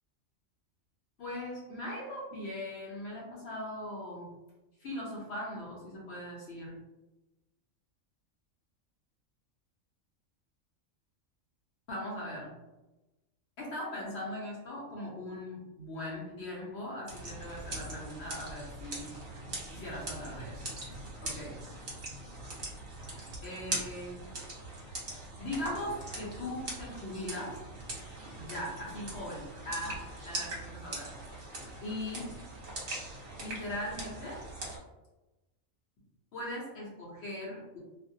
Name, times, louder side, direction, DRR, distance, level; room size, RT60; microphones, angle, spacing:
voice 1, 1.2-4.3 4.8-6.8 11.9-12.6 13.6-19.1 19.7-20.7 21.2-21.7 23.4-24.3 25.4-27.6 28.3-31.2 31.8-32.4 33.4-34.5 36.3-37.8, left 1 dB, 55° left, -4 dB, 0.9 m, -40 dB
sound 1, 17.1-34.8, right 2 dB, 50° right, 0.9 m, -41 dB
2.5 x 2.1 x 2.6 m, 1.0 s
omnidirectional pair, 1.4 m